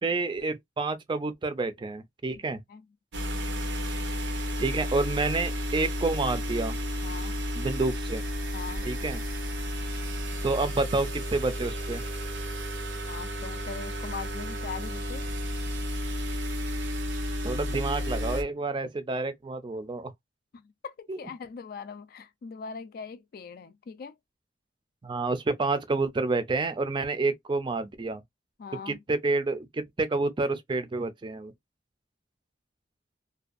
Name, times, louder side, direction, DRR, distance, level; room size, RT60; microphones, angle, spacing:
voice 1, 0.0-2.6 4.6-6.8 7.6-8.2 8.9-9.2 10.4-12.0 17.4-20.1 21.1-21.2 25.0-28.2 28.9-31.5, right 3 dB, 25° right, 0.4 m, -29 dB
voice 2, 2.4-2.9 7.0-7.4 8.5-8.9 13.1-15.3 20.5-24.2 28.6-29.0, left 5 dB, 55° left, 0.3 m, -41 dB
sound 1, 3.1-18.4, equal, 90° right, 0.7 m, -32 dB
2.5 x 2.2 x 2.4 m
head